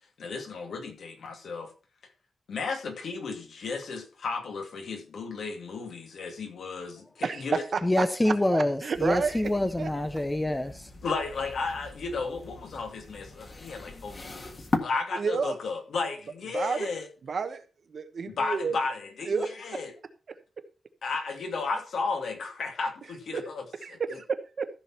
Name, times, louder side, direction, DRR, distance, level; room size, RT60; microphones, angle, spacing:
voice 1, 0.2-1.7 2.5-7.6 9.8-9.9 11.0-17.1 18.3-19.9 21.0-24.2, left 4 dB, 70° left, 2.7 m, -34 dB
voice 2, 7.2-7.8 8.2-9.3 9.8-9.9 15.1-15.5 16.5-16.9 17.2-17.6 17.9-18.7 19.3-19.8 20.3-20.4 23.3-23.4 23.8-24.7, right 5 dB, 50° right, 1.2 m, -30 dB
voice 3, 7.8-10.9, left 1 dB, 10° left, 0.8 m, -26 dB
sound 1, 8.9-14.8, left 3 dB, 30° left, 1.7 m, -38 dB
15.0 x 6.3 x 4.4 m
wide cardioid pair, 170°, 0 cm